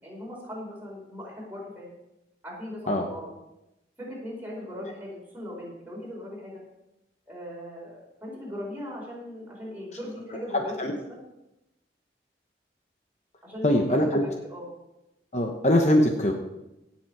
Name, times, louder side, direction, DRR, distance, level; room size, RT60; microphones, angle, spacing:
voice 1, 0.0-1.9 2.4-3.3 4.0-6.6 7.3-11.2 13.4-14.7, left 1 dB, 10° right, -4 dB, 4.7 m, -39 dB
voice 2, 10.5-10.9 13.6-14.2 15.3-16.3, left 1 dB, 40° left, 3 dB, 1.0 m, -22 dB
17.0 x 7.4 x 4.7 m, 0.93 s
head